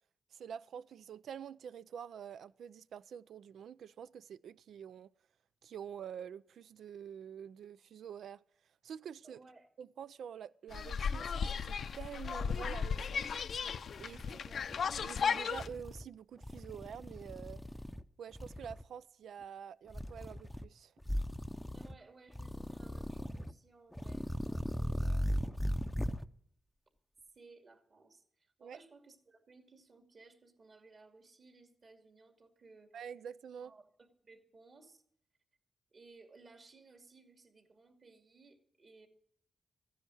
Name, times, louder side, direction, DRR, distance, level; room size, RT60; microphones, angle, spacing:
voice 1, 0.3-5.1 5.6-8.4 8.8-9.4 9.8-13.3 14.0-14.2 15.0-17.6 18.2-20.9 28.6-28.8 32.9-33.7, right 8 dB, 90° right, 0.4 m, -47 dB
voice 2, 9.2-9.7 14.0-14.7 21.7-25.7 27.3-33.0 33.6-33.8 34.2-35.0 35.9-39.1, right 3 dB, 50° right, 2.5 m, -60 dB
sound 1, 10.7-15.7, left 6 dB, 70° left, 0.6 m, -35 dB
sound 2, 12.6-12.7 13.1-14.2 14.6-15.0 15.5-16.1 16.4-18.0 18.3-18.8 19.9-20.7 21.0-22.0 22.3-23.5 23.9-26.3, equal, 5° left, 0.6 m, -38 dB
14.5 x 10.0 x 6.3 m
cardioid pair, 100°, 0 cm